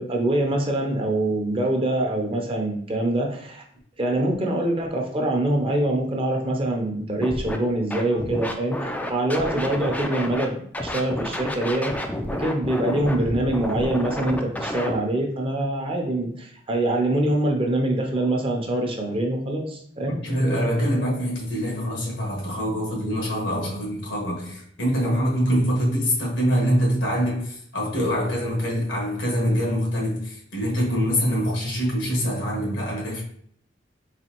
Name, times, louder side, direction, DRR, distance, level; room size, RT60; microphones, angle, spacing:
voice 1, 0.0-3.6 4.0-12.0 12.3-20.2, right 1 dB, 30° right, 0.6 m, -24 dB
Scratching (performance technique), 7.2-7.6 7.9-10.5 10.7-14.9, left 1 dB, 10° left, 0.3 m, -30 dB
voice 2, 20.2-33.2, equal, 85° left, 1.3 m, -24 dB
4.1 x 2.7 x 2.9 m
head